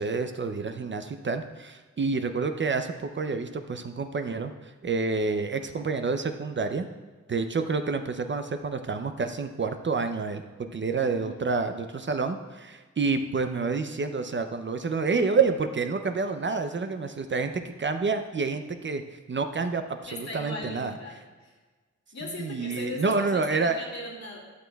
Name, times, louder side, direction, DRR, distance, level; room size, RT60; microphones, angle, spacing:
voice 1, 0.0-6.9 7.3-10.4 10.7-19.0 19.3-20.9 22.2-23.8, right 4 dB, 40° right, 8 dB, 0.5 m, -28 dB
voice 2, 11.0-11.3 20.1-21.5 22.1-24.4, left 2 dB, 60° left, -3 dB, 2.1 m, -38 dB
12.5 x 6.2 x 2.3 m, 1.3 s
cardioid pair, 75°, 31 cm